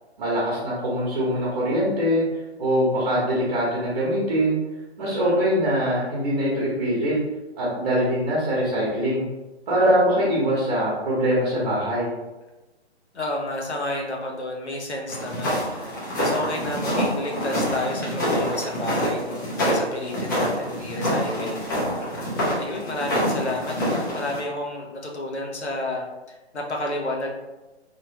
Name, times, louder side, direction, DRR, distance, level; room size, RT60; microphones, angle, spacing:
voice 1, 0.2-2.2 2.6-4.6 5.0-7.2 7.6-9.2 9.7-12.1, equal, 40° right, -7 dB, 1.0 m, -23 dB
voice 2, 5.0-5.4 13.1-19.4 19.7-21.8 22.1-22.3 22.5-27.3, left 1 dB, 75° left, 0 dB, 1.0 m, -31 dB
sound 1, 15.1-24.4, equal, 15° left, 0.6 m, -26 dB
3.2 x 3.1 x 2.8 m, 1.1 s
figure-of-eight pair, 135°, 34 cm